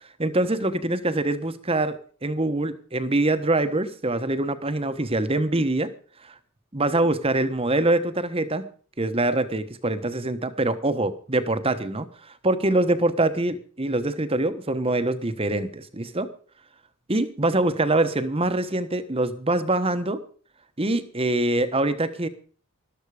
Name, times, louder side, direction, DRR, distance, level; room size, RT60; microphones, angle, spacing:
voice 1, 0.2-2.0 2.2-5.9 6.2-6.3 6.7-8.7 9.0-12.1 12.4-16.3 17.1-20.2 20.8-22.3, right 2 dB, 25° right, 10 dB, 1.2 m, -24 dB
14.0 x 12.5 x 5.0 m, 0.43 s
head